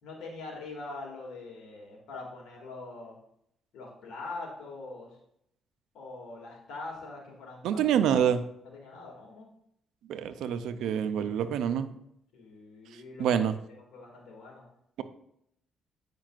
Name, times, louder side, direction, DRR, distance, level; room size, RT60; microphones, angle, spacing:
voice 1, 0.0-3.2 3.7-5.1 5.9-7.8 8.1-8.2 8.7-9.5 12.3-13.5 13.9-14.7, left 3 dB, 85° left, -2 dB, 2.2 m, -43 dB
voice 2, 7.6-8.4 10.1-11.9 13.2-13.5, right 8 dB, 85° right, 11 dB, 0.5 m, -26 dB
9.0 x 5.2 x 2.4 m, 0.74 s
cardioid pair, 90°, 0 cm